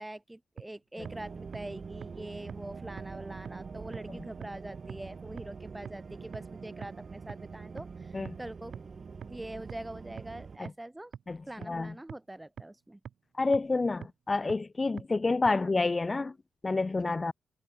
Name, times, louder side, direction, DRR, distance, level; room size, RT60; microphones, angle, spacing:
voice 1, 0.0-8.8 9.3-11.1 11.5-13.0 15.5-15.7 17.1-17.2, right 1 dB, 10° right, 3.7 m, -44 dB
sound 1, 0.6-0.7 1.1-1.2 1.5-1.6 2.0-2.1 2.5-2.6 3.0-3.1 3.5-3.6 3.9-4.0 4.4-4.5 4.9-5.0 5.4-5.5 5.9-6.0 6.3-6.4 6.8-6.9 7.3-7.4 7.8-7.9 8.3-8.4 8.7-8.8 9.2-9.3 9.7-9.8 10.2-10.3 10.7-10.8 11.1-11.2 11.6-11.7 12.1-12.2 12.6-12.7 13.1-13.2 13.5-13.6 14.0-14.1 14.5-14.6 15.0-15.1 15.5-15.6, right 8 dB, 60° right, 1.5 m, -41 dB
sound 2, 1.0-10.6, right 5 dB, 40° right, 3.8 m, -44 dB
voice 2, 13.4-16.3 16.6-17.3, left 3 dB, 25° left, 0.7 m, -28 dB
cardioid pair, 90°, 0 cm